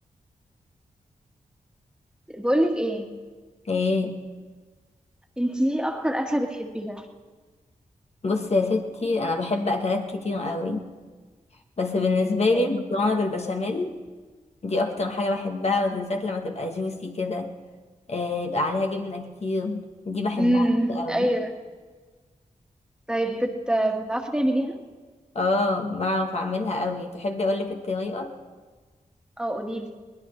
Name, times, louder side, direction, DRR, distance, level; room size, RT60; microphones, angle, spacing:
voice 1, 2.3-3.1 5.4-7.1 12.5-12.8 20.4-21.5 23.1-24.8 29.4-29.9, right 1 dB, 5° right, 2 dB, 1.7 m, -25 dB
voice 2, 3.7-4.2 8.2-10.8 11.8-14.0 14.6-17.5 18.1-20.6 20.9-21.3 25.3-28.3, left 3 dB, 50° left, 3 dB, 1.2 m, -26 dB
21.5 x 19.0 x 3.2 m, 1.4 s
cardioid pair, 65°, 14 cm